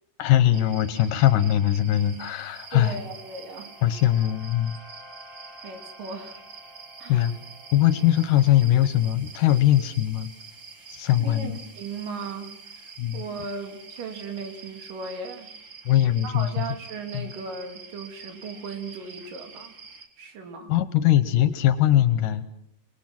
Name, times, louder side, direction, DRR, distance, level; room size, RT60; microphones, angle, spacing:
voice 1, 0.2-3.0 3.8-4.8 7.1-7.3 7.7-10.3 10.9-11.6 13.0-13.2 15.9-16.6 17.1-17.3 20.7-22.4, left 12 dB, 75° left, 13 dB, 2.6 m, -21 dB
sound 1, 0.5-20.1, right 5 dB, 40° right, 2.0 m, -46 dB
sound 2, 1.9-15.3, equal, 15° right, 7.5 m, -53 dB
voice 2, 2.7-3.7 5.6-6.4 7.0-7.3 11.2-12.5 12.8-15.5 16.2-19.8 20.2-20.7, right 4 dB, 70° right, 5 dB, 4.2 m, -37 dB
29.5 x 20.5 x 6.1 m, 0.75 s
omnidirectional pair, 4.0 m